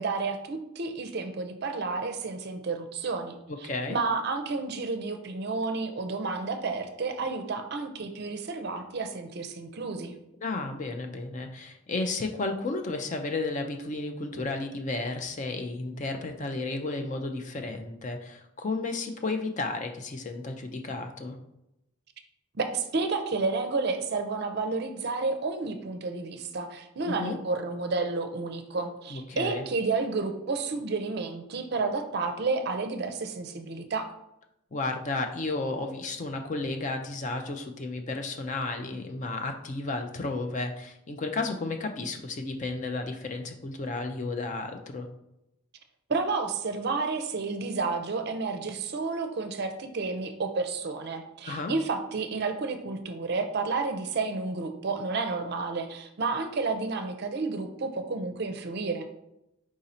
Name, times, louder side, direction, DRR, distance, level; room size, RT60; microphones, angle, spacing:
voice 1, 0.0-3.4 3.9-10.2 22.5-34.1 46.1-59.0, right 4 dB, 50° right, 7 dB, 0.5 m, -31 dB
voice 2, 3.5-4.0 10.4-21.4 27.0-27.4 29.1-29.6 34.7-45.1 51.4-51.7, left 3 dB, 35° left, 5 dB, 0.4 m, -33 dB
4.8 x 2.6 x 4.2 m, 0.86 s
head